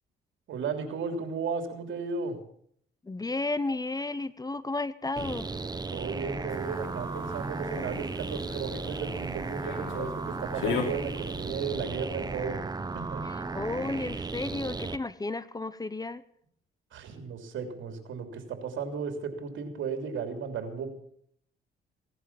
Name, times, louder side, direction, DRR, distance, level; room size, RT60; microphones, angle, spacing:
voice 1, 0.5-2.4 5.9-12.6 12.9-13.2 16.9-20.9, right 5 dB, 75° right, 6 dB, 3.3 m, -35 dB
voice 2, 3.0-5.5 13.2-16.2, left 3 dB, 20° left, 16 dB, 0.8 m, -33 dB
sound 1, 5.2-15.0, right 3 dB, 20° right, 1.0 m, -35 dB
sound 2, 6.5-11.5, left 5 dB, 80° left, 3.3 m, -38 dB
17.0 x 11.0 x 7.2 m, 0.66 s
cardioid pair, 90°, 20 cm